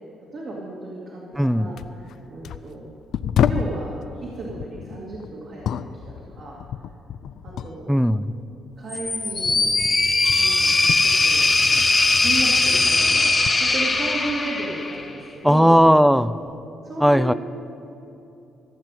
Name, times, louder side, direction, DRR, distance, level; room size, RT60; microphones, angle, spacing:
voice 1, 0.3-2.9 3.4-3.9 4.2-6.6 7.4-7.9 8.8-9.6 10.3-10.7 11.0-11.8 12.2-15.7 16.8-17.3, right 2 dB, 60° right, -4 dB, 2.3 m, -34 dB
sound 1, 1.3-1.5 1.8-3.8 4.5-7.8 8.1-11.9 12.2-14.5 15.0-15.7 16.5-16.6, left 8 dB, 70° left, 0.4 m, -31 dB
voice 2, 1.4-1.7 7.9-8.4 15.4-16.3 17.0-17.3, equal, ahead, 15 dB, 0.4 m, -17 dB
sound 2, 8.9-15.1, left 3 dB, 25° left, 1.3 m, -20 dB
14.5 x 6.0 x 9.0 m, 2.8 s
cardioid pair, 90°, 0 cm